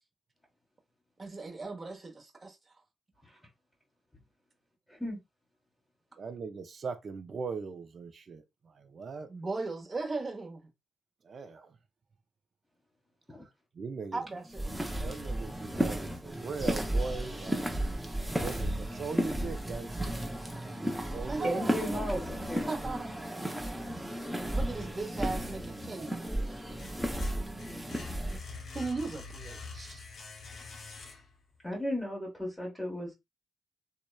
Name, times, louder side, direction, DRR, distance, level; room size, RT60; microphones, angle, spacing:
voice 1, 1.2-2.6 9.3-10.7 14.1-15.1 21.2-22.1 22.7-23.2 24.5-26.2 28.7-30.0, right 3 dB, 35° right, 0.9 m, -37 dB
voice 2, 6.2-9.3 11.2-11.8 13.7-14.2 15.0-17.7 18.4-20.2 20.9-21.5 26.0-26.1, right 5 dB, 55° right, 0.5 m, -40 dB
sound 1, 14.5-28.4, right 1 dB, 5° right, 0.6 m, -34 dB
voice 3, 21.4-23.0 31.6-33.1, equal, 10° left, 1.1 m, -35 dB
sound 2, 25.3-26.1 26.5-31.6, left 4 dB, 60° left, 0.6 m, -46 dB
2.8 x 2.1 x 2.2 m
cardioid pair, 65°, 0 cm